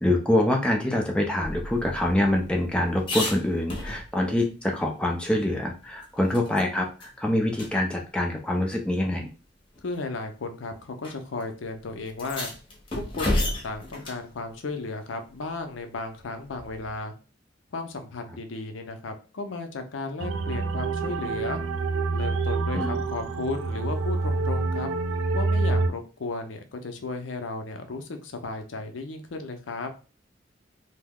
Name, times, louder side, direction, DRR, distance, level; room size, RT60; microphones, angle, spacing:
voice 1, 0.0-9.3 22.7-23.0, left 1 dB, 5° left, 0 dB, 0.4 m, -25 dB
sound 1, 1.4-4.4 4.8-4.9 5.2-6.7 7.0-7.1 7.5-7.7 8.7-8.8 9.7-10.0 11.0-11.1 11.4-11.5 12.1-14.3 16.5-17.0, left 1 dB, 25° left, 0.8 m, -33 dB
voice 2, 9.8-12.5 12.9-17.1 17.7-21.6 22.1-24.9 25.3-29.9, left 3 dB, 75° left, 6 dB, 0.5 m, -34 dB
sound 2, 20.2-25.9, right 3 dB, 85° right, 0.4 m, -27 dB
2.7 x 2.0 x 3.5 m, 0.34 s
head